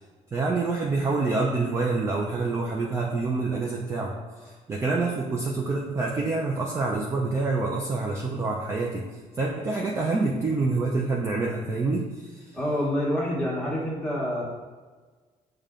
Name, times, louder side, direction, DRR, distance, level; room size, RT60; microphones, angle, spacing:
voice 1, 0.3-4.2 4.4-9.1 9.4-12.4, right 3 dB, 20° right, -2 dB, 0.4 m, -27 dB
voice 2, 12.5-14.4, equal, 5° left, -6 dB, 1.2 m, -27 dB
6.6 x 2.2 x 3.6 m, 1.4 s
cardioid pair, 160°, 14 cm